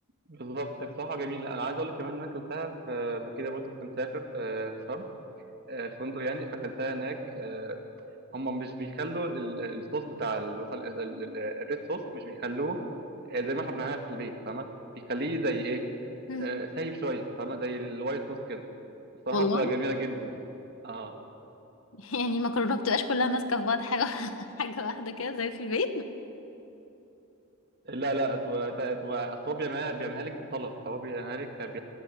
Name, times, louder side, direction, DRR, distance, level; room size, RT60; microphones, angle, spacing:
voice 1, 0.3-5.0 5.7-7.8 8.3-12.8 13.3-14.7 14.9-15.8 16.4-18.6 19.3-20.3 20.8-21.2 27.9-31.8, right 2 dB, 50° right, 4 dB, 2.1 m, -33 dB
voice 2, 19.3-19.7 22.0-26.0, left 3 dB, 75° left, 9 dB, 1.3 m, -29 dB
22.0 x 17.5 x 9.2 m, 3.0 s
head